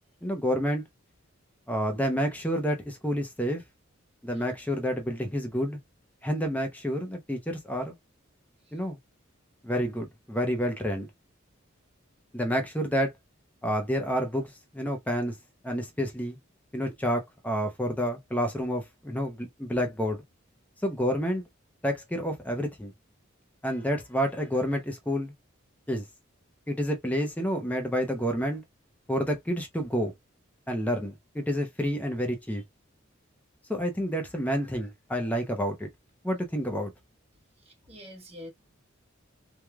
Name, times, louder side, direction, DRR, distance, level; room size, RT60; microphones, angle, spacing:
voice 1, 0.2-0.8 1.7-3.6 4.2-5.8 6.2-7.9 8.7-9.0 9.6-11.1 12.3-13.1 13.6-15.4 15.6-16.4 16.7-20.2 20.8-21.4 21.8-22.9 23.6-25.3 25.9-26.0 26.7-28.6 29.1-30.1 30.7-32.6 33.7-35.9 36.2-36.9, equal, 10° left, 0.6 m, -29 dB
voice 2, 37.7-38.5, left 1 dB, 30° right, 1.1 m, -45 dB
3.1 x 2.1 x 2.3 m
head